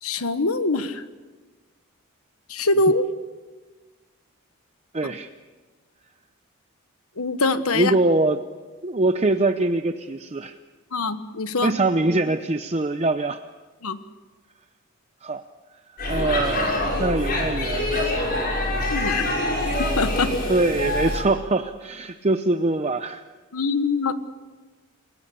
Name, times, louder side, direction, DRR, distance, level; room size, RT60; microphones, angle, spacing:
voice 1, 0.0-1.0 2.5-3.0 7.2-7.9 10.9-11.7 13.8-14.0 18.9-19.2 20.0-20.3 23.5-24.1, left 3 dB, 85° left, 10 dB, 1.4 m, -23 dB
voice 2, 4.9-5.3 7.7-8.4 8.8-10.6 11.6-13.4 15.2-15.4 16.1-18.8 20.5-23.2, right 2 dB, 30° right, 8 dB, 0.7 m, -23 dB
Speech / Shout / Subway metro underground, 16.0-21.2, left 1 dB, 45° left, 6.3 m, -25 dB
29.5 x 18.0 x 6.9 m, 1.3 s
head